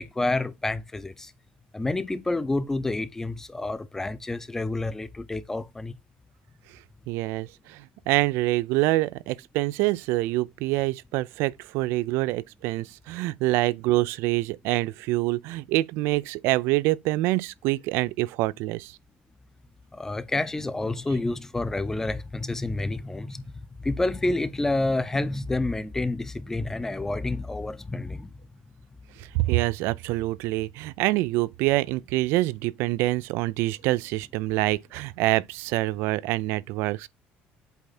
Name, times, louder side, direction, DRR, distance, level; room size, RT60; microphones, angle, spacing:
voice 1, 0.0-1.3 1.7-6.0 19.9-23.4 23.8-28.3, left 2 dB, 10° left, 0.7 m, -29 dB
voice 2, 7.1-19.0 29.2-37.1, right 19 dB, 80° right, 0.4 m, -26 dB
8.1 x 3.4 x 4.2 m
cardioid pair, 125°, 4 cm